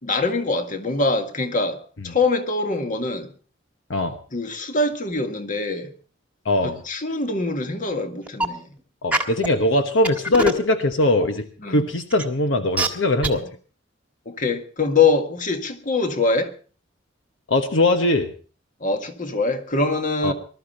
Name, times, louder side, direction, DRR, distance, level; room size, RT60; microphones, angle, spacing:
voice 1, 0.0-3.3 4.3-5.9 6.6-8.7 11.6-11.8 14.2-16.5 18.8-20.3, left 3 dB, 45° left, 6 dB, 1.8 m, -23 dB
voice 2, 6.4-6.8 9.0-13.5 17.5-18.3 20.2-20.3, left 2 dB, 70° left, 7 dB, 1.2 m, -21 dB
sound 1, 8.3-8.4 9.1-9.5 10.0-10.6 11.2-11.3 12.1-12.2 12.8-12.9 13.2-13.3, right 2 dB, 5° right, 1.6 m, -21 dB
20.0 x 12.5 x 4.3 m, 0.39 s
head